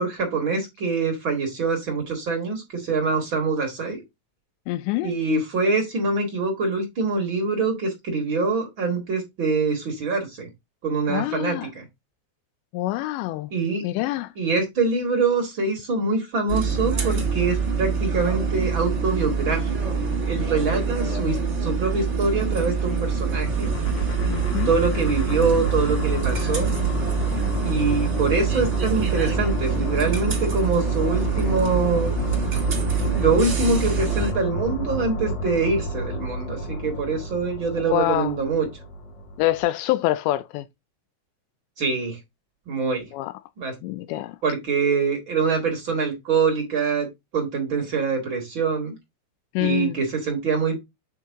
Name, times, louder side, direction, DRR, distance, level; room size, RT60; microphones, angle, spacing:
voice 1, 0.0-4.0 5.0-10.5 10.8-11.8 13.5-13.8 14.4-20.0 20.2-23.7 24.7-26.7 27.6-32.1 33.1-38.7 41.8-42.2 42.7-43.1 43.6-43.7 44.4-47.1 47.3-48.9 49.6-50.8, right 4 dB, 70° right, 1.1 m, -24 dB
voice 2, 4.7-5.1 11.1-11.7 12.7-13.5 13.8-14.3 24.2-24.7 37.8-38.4 39.4-40.7 43.1-43.3 43.8-44.4 49.5-50.0, left 15 dB, 90° left, 2.5 m, -25 dB
sound 1, 16.5-34.3, right 5 dB, 40° right, 1.2 m, -25 dB
sound 2, 23.4-39.6, equal, 50° left, 2.7 m, -31 dB
8.8 x 4.6 x 3.6 m
omnidirectional pair, 5.7 m